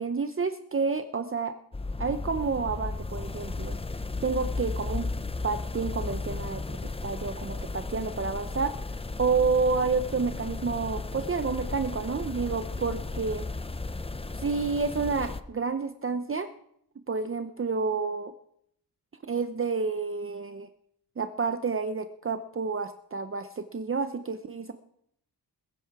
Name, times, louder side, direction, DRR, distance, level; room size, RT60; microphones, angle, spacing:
voice 1, 0.0-1.5 2.0-3.8 4.2-5.1 5.4-6.6 7.0-8.7 9.2-13.4 14.3-16.5 17.1-18.3 19.2-20.7 21.2-24.7, right 4 dB, 35° right, 9 dB, 0.7 m, -29 dB
sound 1, 1.7-15.4, left 3 dB, 15° left, 0.5 m, -35 dB
21.0 x 10.5 x 4.7 m, 0.70 s
wide cardioid pair, 105°, 39 cm